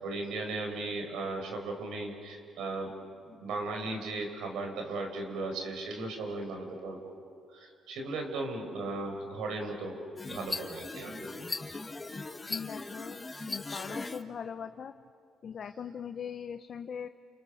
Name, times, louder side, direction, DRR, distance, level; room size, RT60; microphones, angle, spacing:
voice 1, 0.0-2.9 3.2-7.1 7.5-10.0 10.3-11.5 13.4-13.5, right 2 dB, 85° right, 3 dB, 5.4 m, -37 dB
sound 1, 10.2-14.2, left 3 dB, 25° left, 1.4 m, -39 dB
voice 2, 12.5-14.9 15.4-17.1, left 7 dB, 55° left, 7 dB, 1.0 m, -40 dB
30.0 x 29.0 x 6.6 m, 2.3 s
cardioid pair, 90°, 0 cm